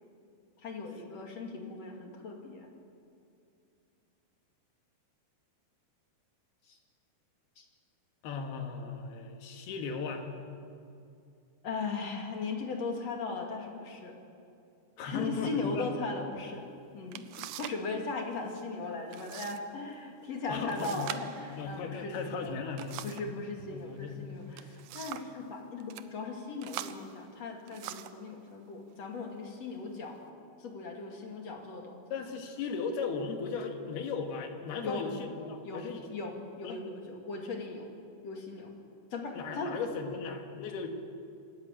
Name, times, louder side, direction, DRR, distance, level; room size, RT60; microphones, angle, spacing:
voice 1, 0.6-2.7 6.6-6.8 7.6-7.7 11.6-14.2 15.0-17.3 17.6-22.6 23.0-30.3 30.6-32.0 34.8-35.1 35.6-35.8 36.1-37.9 38.2-38.7 39.1-39.8, left 3 dB, 45° left, 2 dB, 3.0 m, -38 dB
voice 2, 8.2-10.3 15.0-15.9 17.4-17.5 20.5-21.1 21.6-23.0 23.7-24.3 32.1-36.1 36.6-36.8 39.4-40.9, left 5 dB, 75° left, 4 dB, 3.6 m, -37 dB
sound 1, 16.6-16.7 17.1-17.9 18.1-18.6 19.1-19.6 19.9-20.0 20.7-23.4 24.3-25.4 25.8-26.1 26.6-28.2 29.0-29.2 29.7-30.2, right 12 dB, 80° right, 1.9 m, -44 dB
26.0 x 13.5 x 8.9 m, 2.5 s
omnidirectional pair, 4.6 m